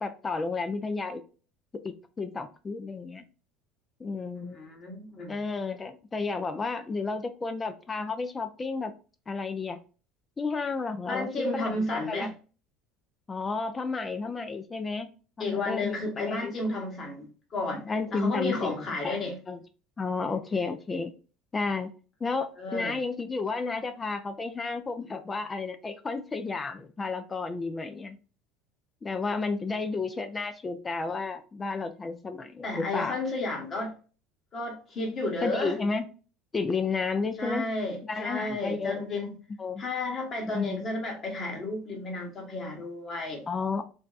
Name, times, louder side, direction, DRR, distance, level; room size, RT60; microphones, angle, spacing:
voice 1, 0.0-1.2 1.8-3.2 4.0-4.6 5.3-8.9 9.3-9.8 10.4-12.3 13.3-15.1 15.4-16.5 17.7-19.2 19.5-19.6 20.0-21.1 21.5-21.9 22.2-28.2 29.0-33.2 35.4-36.1 36.5-37.7 38.0-39.0 39.6-39.8 40.5-40.8 43.5-43.8, left 4 dB, 25° left, 0.3 m, -32 dB
voice 2, 4.3-5.3 11.1-12.3 15.4-17.8 18.1-19.3 22.6-23.0 32.6-33.9 34.5-35.7 37.4-39.4 39.8-43.4, left 2 dB, 40° left, 1.0 m, -32 dB
2.6 x 2.2 x 2.3 m
hypercardioid pair, 85°, 0 cm